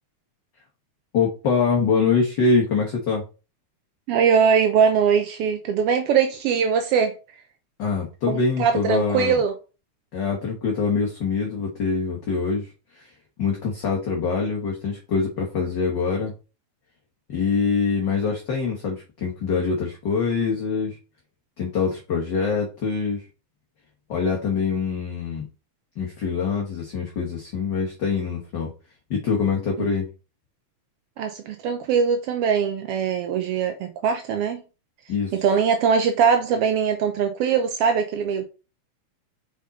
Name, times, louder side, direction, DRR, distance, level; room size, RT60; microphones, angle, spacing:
voice 1, 1.1-3.2 7.8-9.4 10.1-13.1 13.4-16.3 17.3-21.0 21.6-23.2 24.1-25.4 26.0-28.7 29.1-30.1 35.1-35.3, left 5 dB, 50° left, 1.4 m, -24 dB
voice 2, 4.1-7.1 8.3-9.5 29.8-29.9 31.2-34.6 35.3-38.5, right 6 dB, 85° right, 1.3 m, -21 dB
5.4 x 5.0 x 4.0 m
omnidirectional pair, 3.4 m